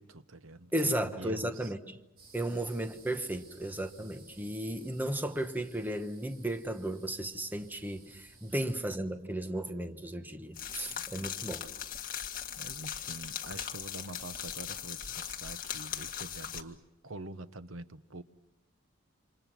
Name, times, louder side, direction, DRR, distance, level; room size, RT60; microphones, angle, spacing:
voice 1, 0.0-1.7 2.4-2.7 4.0-4.1 10.9-11.3 12.0-16.8 17.0-18.2, right 2 dB, 80° right, 1.1 m, -46 dB
voice 2, 0.7-2.0 2.3-11.7, right 1 dB, 10° right, 1.0 m, -34 dB
sound 1, 2.2-8.8, right 3 dB, 45° right, 3.9 m, -58 dB
sound 2, 10.6-16.6, left 9 dB, 45° left, 1.8 m, -39 dB
28.5 x 26.5 x 6.0 m
head